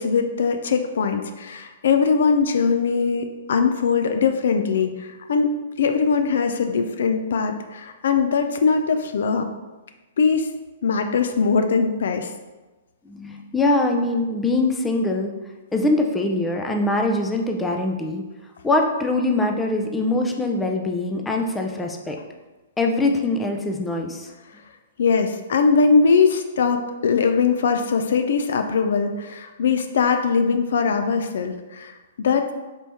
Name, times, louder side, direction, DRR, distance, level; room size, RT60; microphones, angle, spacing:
voice 1, 0.0-9.5 10.2-10.5 10.8-12.3 25.0-32.5, left 5 dB, 70° left, 7 dB, 0.3 m, -21 dB
voice 2, 13.1-15.3 15.7-18.2 18.6-22.2 22.8-24.3, left 2 dB, 10° left, 2 dB, 0.4 m, -23 dB
4.3 x 2.8 x 3.4 m, 1.2 s
hypercardioid pair, 125°, 0 cm